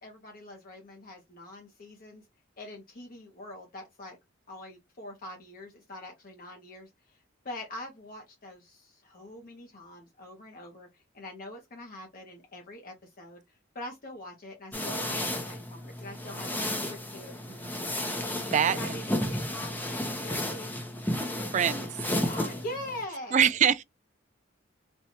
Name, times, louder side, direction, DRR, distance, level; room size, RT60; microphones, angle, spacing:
voice 1, 0.0-2.3 2.6-4.2 4.5-17.4 17.6-17.8 18.5-20.8 22.2-23.4, left 1 dB, 50° left, 0.9 m, -43 dB
sound 1, 14.7-23.0, left 1 dB, 10° left, 0.7 m, -33 dB
voice 2, 21.5-21.9 23.3-23.8, right 8 dB, 40° right, 0.3 m, -23 dB
4.3 x 2.3 x 2.7 m
head